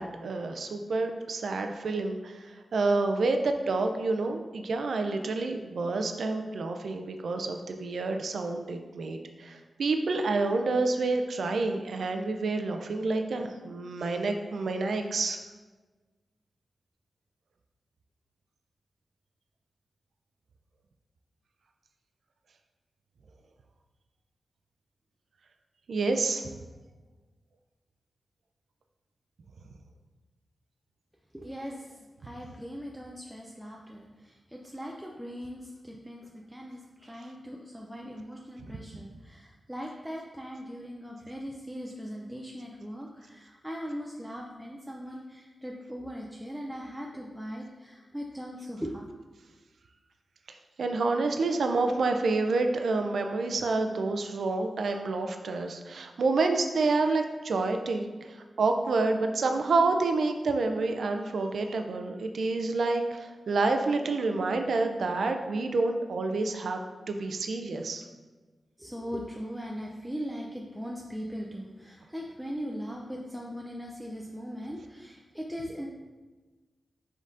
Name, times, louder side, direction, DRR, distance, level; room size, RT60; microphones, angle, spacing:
voice 1, 0.0-15.4 25.9-26.5 50.8-68.0, right 3 dB, 75° right, 5 dB, 0.4 m, -28 dB
voice 2, 31.3-49.0 68.8-75.9, equal, 5° right, -1 dB, 0.4 m, -39 dB
5.3 x 3.8 x 2.5 m, 1.3 s
wide cardioid pair, 100°, 0 cm